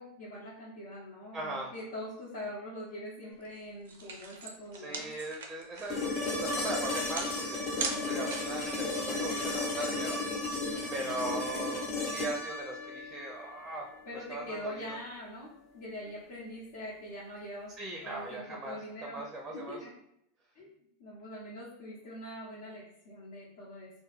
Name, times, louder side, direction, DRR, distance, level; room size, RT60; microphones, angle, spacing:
voice 1, 0.0-5.1 7.8-8.2 10.7-11.2 14.1-17.7 18.0-19.9 20.5-20.7 21.0-23.9, left 1 dB, 70° left, -9 dB, 0.8 m, -43 dB
voice 2, 1.3-1.7 4.7-10.2 10.9-13.9 14.3-15.0 17.8-18.8 19.1-19.8, right 2 dB, 20° right, 0 dB, 0.4 m, -39 dB
sound 1, 3.5-3.6 3.9-8.7, right 4 dB, 90° right, 0.4 m, -39 dB
sound 2, 5.9-14.0 16.1-16.2, left 2 dB, 45° left, 0.9 m, -34 dB
2.2 x 2.1 x 3.1 m, 0.76 s
supercardioid pair, 120°, 0 cm